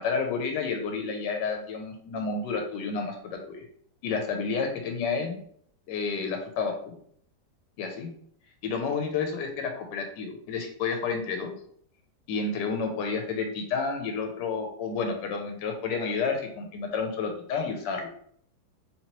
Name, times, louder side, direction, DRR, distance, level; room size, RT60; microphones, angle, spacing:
voice 1, 0.0-3.6 4.0-5.4 5.9-6.7 7.8-8.1 8.6-11.5 12.3-18.1, left 5 dB, 80° left, 4 dB, 1.2 m, -30 dB
3.8 x 3.0 x 2.9 m, 0.63 s
omnidirectional pair, 1.9 m